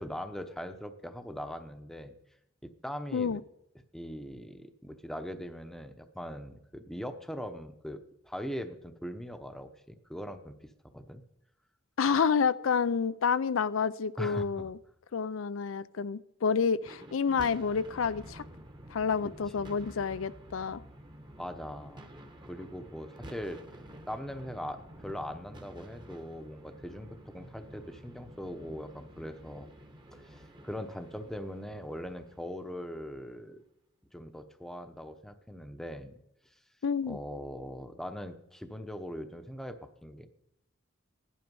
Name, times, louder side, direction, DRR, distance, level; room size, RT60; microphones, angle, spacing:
voice 1, 0.0-2.1 2.6-3.4 3.9-8.0 8.3-10.6 10.9-11.2 14.2-14.7 19.6-20.3 21.4-22.1 22.4-23.6 24.1-29.7 30.1-33.6 34.1-36.1 37.1-40.3, equal, ahead, 8 dB, 0.8 m, -41 dB
voice 2, 12.0-14.8 15.1-18.4 18.9-20.8 36.8-37.2, left 6 dB, 75° left, 17 dB, 0.5 m, -29 dB
sound 1, 16.8-33.2, right 1 dB, 25° right, 1.1 m, -50 dB
16.0 x 11.0 x 5.3 m, 0.83 s
head